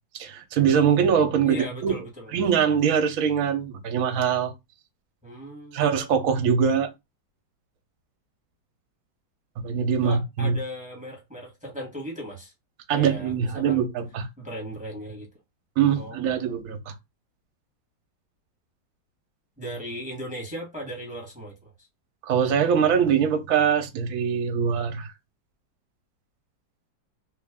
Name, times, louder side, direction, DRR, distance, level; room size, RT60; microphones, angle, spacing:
voice 1, 0.1-1.9 2.3-4.5 5.7-6.9 9.6-10.6 12.9-14.3 15.8-16.9 22.2-25.1, right 7 dB, 60° right, 0.9 m, -23 dB
voice 2, 1.4-2.4 5.2-5.8 10.0-12.5 12.9-13.8 14.4-15.3 16.0-16.4 19.6-21.7, equal, 5° right, 0.9 m, -37 dB
3.3 x 2.5 x 3.5 m
omnidirectional pair, 2.1 m